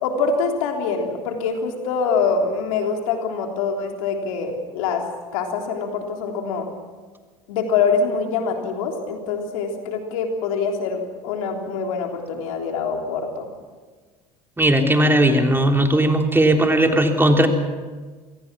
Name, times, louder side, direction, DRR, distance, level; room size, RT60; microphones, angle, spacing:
voice 1, 0.0-5.0 5.3-6.7 7.5-13.5, left 5 dB, 75° left, 2 dB, 3.5 m, -24 dB
voice 2, 14.6-17.5, right 1 dB, 10° right, 3 dB, 3.4 m, -17 dB
27.0 x 19.0 x 6.2 m, 1.4 s
hypercardioid pair, 70°, 18 cm